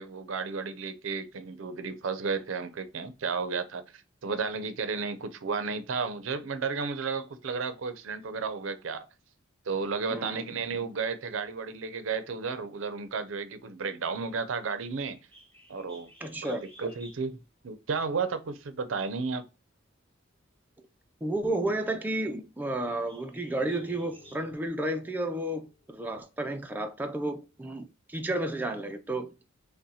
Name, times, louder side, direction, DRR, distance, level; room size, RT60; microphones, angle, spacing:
voice 1, 0.0-9.1 9.7-15.2 15.7-16.1 16.4-17.4 17.6-19.5, right 5 dB, 80° right, 0.5 m, -33 dB
voice 2, 10.1-10.5 16.2-16.6 21.2-29.3, right 1 dB, 10° right, 0.3 m, -32 dB
Bird, 15.1-24.7, equal, 10° left, 1.2 m, -58 dB
sound 1, 23.4-26.1, left 4 dB, 25° left, 0.8 m, -57 dB
5.4 x 2.1 x 2.7 m
head